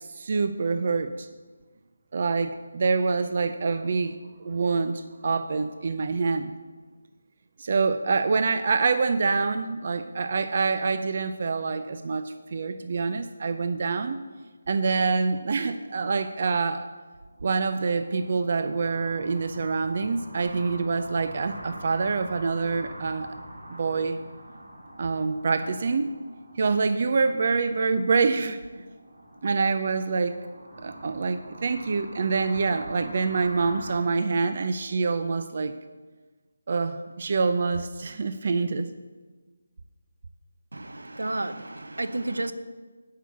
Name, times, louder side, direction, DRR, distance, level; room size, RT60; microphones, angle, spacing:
voice 1, 0.1-1.3 2.1-6.5 7.6-14.2 14.7-16.9 17.4-23.4 23.7-24.2 25.0-26.1 26.6-28.8 29.4-30.3 30.8-35.7 36.7-38.9, right 4 dB, 50° right, 10 dB, 0.5 m, -26 dB
sound 1, 17.2-34.0, right 1 dB, 65° right, 3.1 m, -45 dB
voice 2, 40.7-42.5, right 2 dB, 85° right, 10 dB, 0.7 m, -31 dB
8.2 x 5.6 x 7.3 m, 1.3 s
figure-of-eight pair, 160°, 0 cm